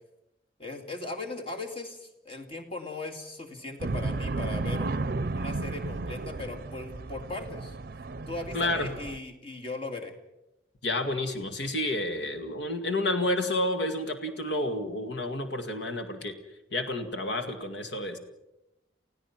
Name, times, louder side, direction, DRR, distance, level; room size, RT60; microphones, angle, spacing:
voice 1, 0.6-4.9 5.3-7.8 8.3-10.1, left 2 dB, 30° left, 3 dB, 2.3 m, -38 dB
sound 1, 3.8-9.2, right 3 dB, 50° right, 0.6 m, -33 dB
voice 2, 8.5-8.9 10.8-16.3 16.7-18.2, left 1 dB, 65° left, 7 dB, 2.0 m, -30 dB
29.0 x 16.0 x 6.0 m, 0.93 s
head